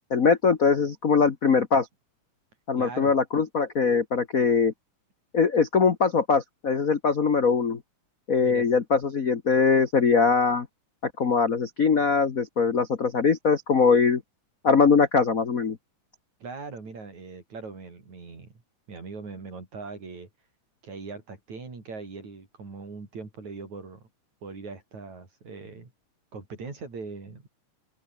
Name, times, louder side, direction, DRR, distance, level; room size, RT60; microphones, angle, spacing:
voice 1, 0.1-1.9 2.7-4.7 5.3-7.8 8.3-10.7 11.0-14.2 14.6-15.8, left 5 dB, 55° left, 0.9 m, -22 dB
voice 2, 2.8-3.1 8.4-8.7 16.4-18.6 18.9-20.3 20.8-24.0 24.4-25.9 26.3-27.5, right 4 dB, 60° right, 7.0 m, -40 dB
open air
omnidirectional pair, 3.7 m